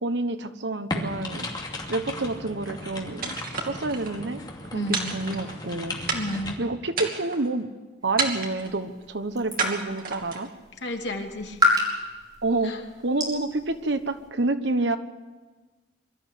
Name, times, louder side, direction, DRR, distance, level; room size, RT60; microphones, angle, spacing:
voice 1, 0.0-1.5 1.9-3.4 3.7-4.4 4.7-6.0 6.6-7.7 8.0-10.5 12.4-12.8 13.0-15.0, right 2 dB, 70° right, 10 dB, 1.2 m, -28 dB
sound 1, 0.9-6.5, left 1 dB, 25° left, 2.6 m, -36 dB
sound 2, 3.2-4.1 4.9-5.7 6.1-6.5 6.9-7.5 8.2-8.7 9.6-10.5, right 4 dB, 50° right, 2.6 m, -30 dB
voice 2, 4.7-5.2 6.1-6.6 10.8-11.6 12.6-12.8, left 1 dB, 65° left, 2 dB, 2.8 m, -32 dB
sound 3, 8.0-14.3, left 1 dB, 25° right, 5.0 m, -31 dB
23.0 x 13.5 x 8.4 m, 1.3 s
head